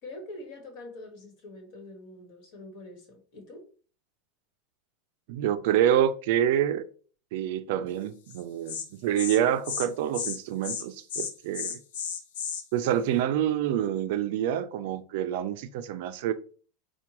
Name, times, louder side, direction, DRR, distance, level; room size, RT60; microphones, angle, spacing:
voice 1, 0.0-3.6, left 2 dB, 55° left, 1.4 m, -44 dB
voice 2, 5.3-6.8 7.3-11.8 12.7-16.3, right 10 dB, 65° right, 0.4 m, -27 dB
Insect, 8.3-8.4 8.7-8.8 9.2-9.4 9.6-9.9 10.1-10.4 10.6-10.8 11.1-12.6, left 7 dB, 75° left, 0.7 m, -33 dB
4.4 x 2.2 x 2.9 m
supercardioid pair, 145°, 0 cm